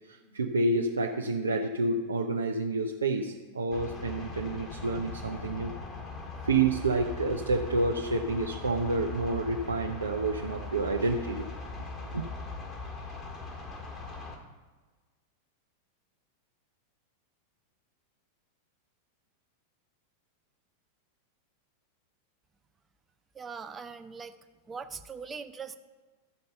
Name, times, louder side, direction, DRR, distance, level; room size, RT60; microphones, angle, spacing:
voice 1, 0.1-5.8 6.4-11.5 12.0-12.2, right 3 dB, 75° right, 2 dB, 0.6 m, -29 dB
sound 1, 3.7-14.4, left 3 dB, 20° left, 2.1 m, -40 dB
voice 2, 23.3-24.3 24.7-25.8, right 5 dB, 20° right, 11 dB, 0.6 m, -41 dB
13.5 x 5.3 x 6.7 m, 1.3 s
figure-of-eight pair, 90°, 0 cm